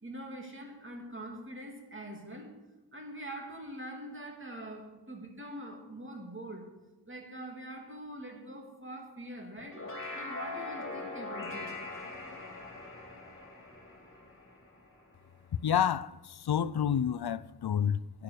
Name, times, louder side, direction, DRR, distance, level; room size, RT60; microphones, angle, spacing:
voice 1, 0.0-2.6 2.9-6.7 7.1-9.9 10.1-11.8, right 1 dB, 30° right, 2.9 m, -44 dB
sound 1, 9.6-15.1, left 2 dB, 30° left, 3.3 m, -42 dB
voice 2, 15.6-18.2, left 8 dB, 70° left, 0.5 m, -29 dB
11.5 x 11.0 x 6.8 m
wide cardioid pair, 70°, 40 cm